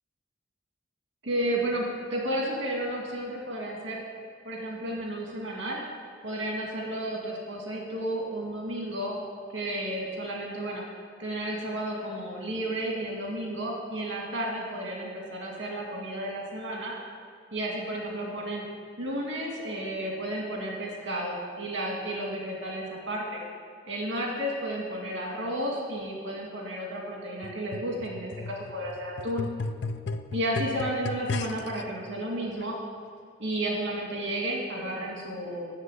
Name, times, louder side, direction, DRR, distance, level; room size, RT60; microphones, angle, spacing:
voice 1, 1.2-4.0 4.4-5.8 6.2-9.2 9.5-10.8 11.2-16.9 17.5-18.6 19.0-23.4 23.8-29.5 30.3-32.8 33.4-35.7, right 1 dB, 85° right, -1 dB, 2.1 m, -32 dB
sound 1, 27.4-31.8 32.6-32.7, left 3 dB, 65° left, 0.4 m, -35 dB
7.4 x 6.9 x 8.1 m, 2.3 s
head